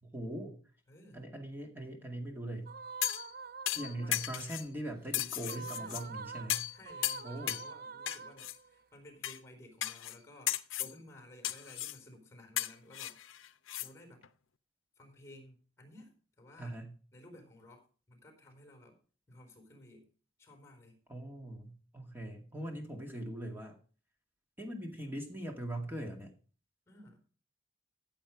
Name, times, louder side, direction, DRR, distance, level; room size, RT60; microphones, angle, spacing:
voice 1, 0.0-0.6 1.1-2.7 3.8-6.7 7.2-7.6 16.6-16.9 21.1-23.8 24.6-26.3, right 1 dB, 10° right, 2 dB, 2.2 m, -41 dB
voice 2, 0.9-1.2 3.8-4.3 5.4-6.1 6.7-13.4 13.8-14.2 15.0-16.8 17.1-19.0 19.3-20.1 20.4-21.0 26.9-27.2, left 1 dB, 15° left, 5 dB, 4.1 m, -56 dB
sound 1, 2.7-4.3 5.4-8.8, right 5 dB, 45° right, 0.5 m, -46 dB
sound 2, 3.0-3.3 3.7-4.7 5.1-6.0 6.5-6.8 7.0-7.7 8.1-8.5 9.2-9.4 9.8-10.2 10.5-10.9 11.4-12.0 12.6-13.9 14.2-14.3, left 13 dB, 75° left, 0.7 m, -35 dB
14.5 x 7.9 x 5.0 m, 0.39 s
head